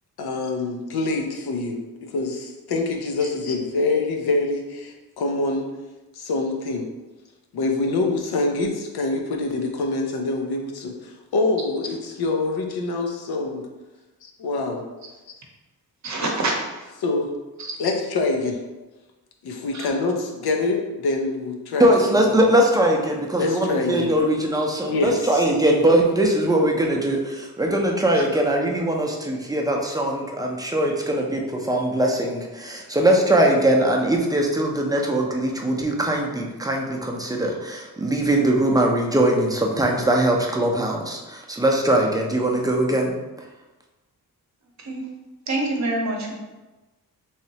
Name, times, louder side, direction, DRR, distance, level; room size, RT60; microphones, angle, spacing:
voice 1, 0.2-5.7 6.2-6.9 7.5-13.7 14.2-14.8 16.2-16.3 17.0-17.3 17.8-18.6 19.4-22.2 23.4-24.1 24.8-25.4, left 3 dB, 85° left, 2 dB, 0.6 m, -25 dB
voice 2, 16.0-16.9 17.6-17.8 19.7-19.9 28.1-28.4 44.8-45.1 45.5-46.3, right 2 dB, 50° right, 0 dB, 0.8 m, -27 dB
voice 3, 21.8-43.1, right 1 dB, 10° right, 0 dB, 0.5 m, -21 dB
3.2 x 2.9 x 2.8 m, 1.1 s
cardioid pair, 80°, 37 cm